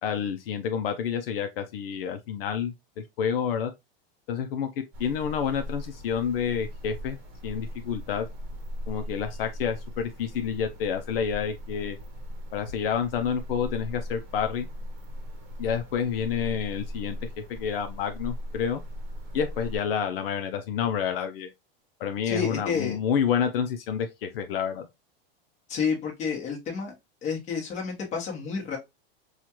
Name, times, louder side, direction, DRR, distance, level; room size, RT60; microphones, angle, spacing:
voice 1, 0.0-2.7 3.2-3.7 4.3-4.7 5.0-7.2 7.4-8.3 8.9-12.0 12.5-14.7 15.6-17.2 17.5-18.8 19.3-21.5 22.0-24.9, left 7 dB, 70° left, 0.6 m, -29 dB
sound 1, 4.9-19.8, equal, 40° right, 0.9 m, -38 dB
voice 2, 22.2-23.0 25.7-26.9 27.2-28.8, left 6 dB, 25° left, 1.1 m, -30 dB
4.2 x 2.4 x 2.9 m
supercardioid pair, 150°, 30 cm